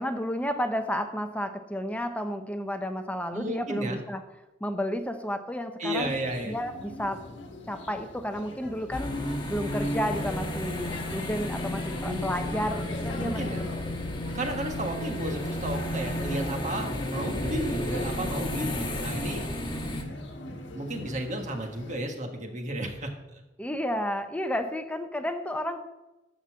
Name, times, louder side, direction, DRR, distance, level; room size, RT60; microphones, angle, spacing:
voice 1, 0.0-4.2 4.6-6.1 6.5-7.2 7.7-9.2 9.5-13.7 23.6-25.8, equal, 5° left, 7 dB, 0.7 m, -31 dB
voice 2, 3.3-4.0 5.8-6.5 12.0-12.3 13.2-13.6 14.3-19.5 20.7-23.4, right 1 dB, 40° right, 3 dB, 1.6 m, -33 dB
sound 1, 5.9-22.0, left 1 dB, 70° left, 1.4 m, -42 dB
sound 2, 8.9-20.0, left 1 dB, 25° left, 1.2 m, -32 dB
13.0 x 4.4 x 7.2 m, 1.1 s
head